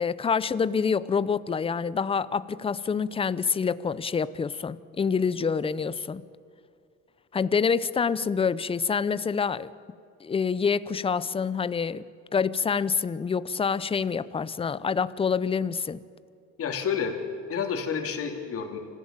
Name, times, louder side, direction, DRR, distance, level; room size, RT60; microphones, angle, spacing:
voice 1, 0.0-6.2 7.3-9.7 10.2-12.0 12.3-16.0, left 6 dB, 20° left, 17 dB, 0.6 m, -27 dB
voice 2, 16.6-17.2 17.5-18.8, left 7 dB, 50° left, 4 dB, 3.1 m, -29 dB
25.5 x 15.5 x 8.9 m, 2.4 s
cardioid pair, 120°, 29 cm